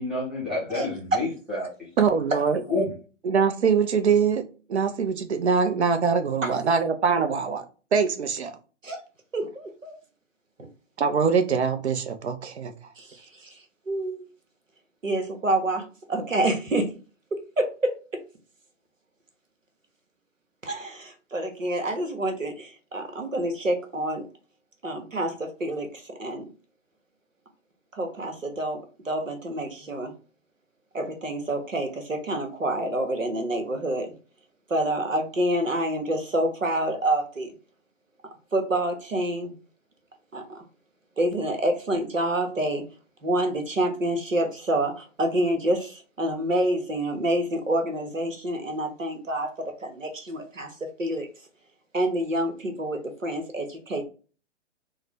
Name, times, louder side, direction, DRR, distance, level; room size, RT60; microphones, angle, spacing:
voice 1, 0.0-1.9 2.7-2.9, left 2 dB, ahead, -8 dB, 0.5 m, -29 dB
voice 2, 0.7-1.2 6.4-6.5 8.8-9.0 9.3-10.0 13.0-13.6 13.9-14.2 15.0-16.9 17.3-18.0 20.6-24.3 24.8-26.5 27.9-30.1 30.9-34.1 34.7-37.5 38.5-39.5 40.3-40.6 41.2-42.9 43.2-51.3 51.9-54.0, right 1 dB, 85° right, 5 dB, 1.1 m, -27 dB
voice 3, 2.0-2.6 3.2-7.6 7.9-8.5 11.0-12.7, right 6 dB, 60° right, 8 dB, 0.7 m, -23 dB
3.7 x 2.2 x 3.3 m, 0.36 s
figure-of-eight pair, 125°, 38 cm